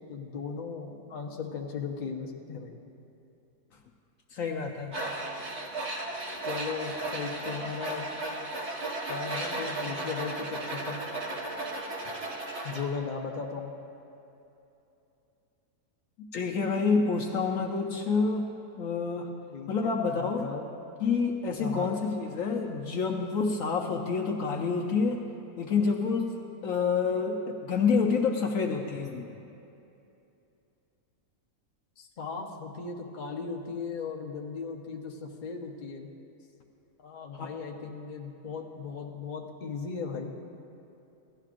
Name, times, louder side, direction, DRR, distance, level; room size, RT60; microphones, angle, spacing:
voice 1, 0.1-2.7 6.4-8.1 9.1-11.0 12.6-13.7 19.5-20.6 21.6-21.9 32.0-36.1 37.0-40.3, left 5 dB, 40° left, 0 dB, 0.8 m, -37 dB
voice 2, 4.3-4.9 16.3-18.5 18.8-19.4 19.7-20.5 21.0-25.2 25.6-26.3 26.6-29.3 37.3-37.5, left 5 dB, 65° left, 1 dB, 1.0 m, -28 dB
Tools, 4.9-12.9, right 2 dB, 45° right, 1.6 m, -35 dB
16.5 x 11.5 x 2.5 m, 2.8 s
omnidirectional pair, 1.6 m